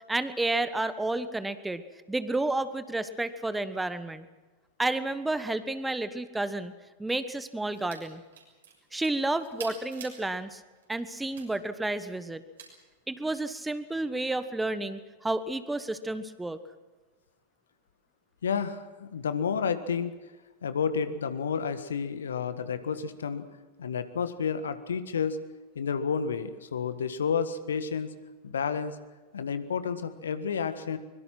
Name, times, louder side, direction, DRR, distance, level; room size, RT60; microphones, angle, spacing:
voice 1, 0.1-1.8 2.1-4.2 4.8-6.7 7.0-8.2 8.9-10.6 10.9-12.4 13.1-16.6, right 2 dB, 5° right, 13 dB, 1.2 m, -31 dB
sound 1, 7.7-8.0 8.3-10.2 10.8-11.5 12.6-12.7, right 7 dB, 65° right, 6.6 m, -46 dB
voice 2, 18.4-20.2 20.6-23.5 23.8-25.4 25.7-28.1 28.4-29.0 29.3-31.0, left 6 dB, 65° left, 11 dB, 1.6 m, -30 dB
24.0 x 22.5 x 6.1 m, 1.2 s
figure-of-eight pair, 90°, 0 cm